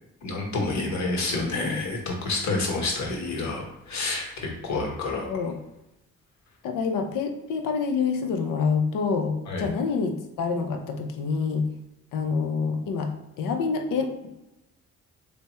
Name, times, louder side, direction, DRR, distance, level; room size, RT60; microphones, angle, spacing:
voice 1, 0.2-5.3 9.5-9.6, left 3 dB, 60° left, 0 dB, 1.1 m, -29 dB
voice 2, 1.3-1.8 5.3-5.6 6.6-11.7 12.1-13.1 13.4-14.1, left 5 dB, 80° left, 4 dB, 0.6 m, -27 dB
3.4 x 2.1 x 4.2 m, 0.94 s
cardioid pair, 75°, 31 cm